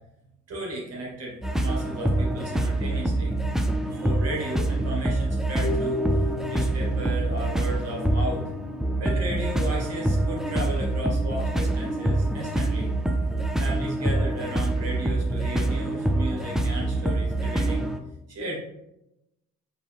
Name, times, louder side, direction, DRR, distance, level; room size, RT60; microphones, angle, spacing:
voice 1, 0.5-3.3 3.8-12.9 13.6-17.8 18.3-18.6, right 1 dB, 55° right, -2 dB, 1.4 m, -35 dB
sound 1, 1.4-18.0, right 1 dB, ahead, 0.4 m, -25 dB
Harp, 5.6-11.7, left 3 dB, 75° left, 0.6 m, -36 dB
4.5 x 2.7 x 3.4 m, 0.89 s
cardioid pair, 90°, 30 cm